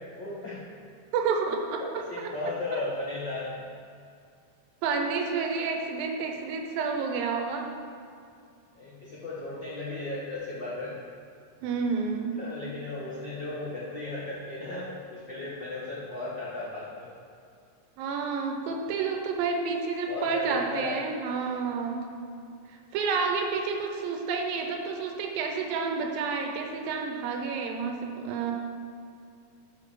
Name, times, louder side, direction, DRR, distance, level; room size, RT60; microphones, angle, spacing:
voice 1, 0.2-0.6 1.8-3.7 8.7-10.9 12.4-17.1 20.1-21.0 21.7-21.8, left 2 dB, 75° left, -8 dB, 1.0 m, -35 dB
voice 2, 1.1-1.8 2.2-2.3 2.7-2.8 4.8-7.7 11.6-12.3 18.0-22.1 22.9-28.5, right 5 dB, 80° right, 3 dB, 2.5 m, -30 dB
6.6 x 5.9 x 6.6 m, 2.5 s
omnidirectional pair, 4.1 m